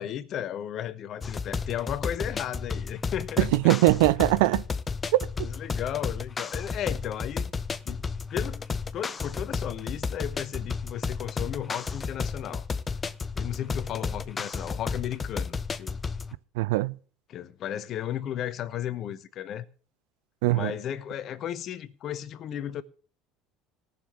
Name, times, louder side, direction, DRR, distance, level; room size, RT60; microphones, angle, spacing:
voice 1, 0.0-3.5 5.4-7.5 7.9-8.6 8.9-12.7 13.4-16.0 17.3-19.7 20.5-22.8, left 10 dB, 45° left, 1.0 m, -34 dB
sound 1, 1.2-16.3, left 5 dB, 25° left, 0.6 m, -33 dB
voice 2, 3.4-4.6 5.1-5.2 16.6-17.0 20.4-20.7, right 20 dB, 65° right, 0.5 m, -21 dB
18.5 x 6.9 x 5.6 m
figure-of-eight pair, 65°, 0 cm